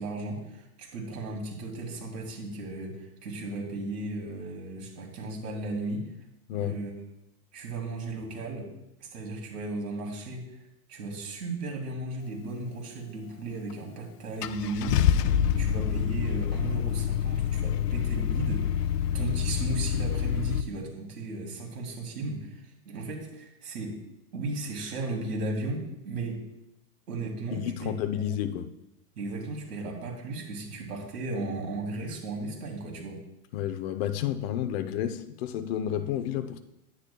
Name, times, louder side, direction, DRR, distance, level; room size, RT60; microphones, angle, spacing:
voice 1, 0.0-6.1 6.5-6.9 7.5-8.7 9.0-10.4 10.9-18.6 19.1-24.0 24.3-26.4 27.1-27.9 29.1-33.2, right 2 dB, 85° right, 3.0 m, -35 dB
voice 2, 6.5-6.8 27.5-28.7 33.5-36.6, left 10 dB, 40° left, 0.7 m, -31 dB
Car / Engine starting, 13.7-13.8 14.4-20.6, left 9 dB, 80° left, 0.7 m, -27 dB
10.0 x 9.6 x 2.3 m
hypercardioid pair, 145°, 46 cm